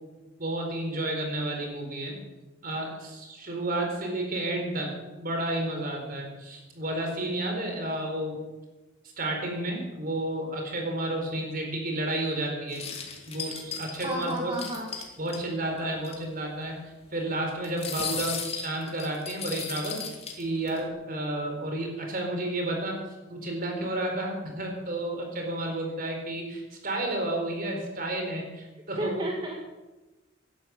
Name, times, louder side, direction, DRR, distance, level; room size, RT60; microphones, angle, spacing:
voice 1, 0.4-2.1 2.6-4.9 5.2-8.4 9.2-12.8 13.3-14.5 15.2-16.8 17.1-23.0 23.3-29.2, right 1 dB, 50° right, 2 dB, 4.3 m, -31 dB
sound 1, 12.7-15.4 15.8-15.9 16.0-16.2 17.6-20.8, left 6 dB, 35° left, 2.7 m, -36 dB
voice 2, 14.0-14.9 29.0-29.5, right 1 dB, 25° right, -1 dB, 1.8 m, -32 dB
15.5 x 11.5 x 7.2 m, 1.2 s
head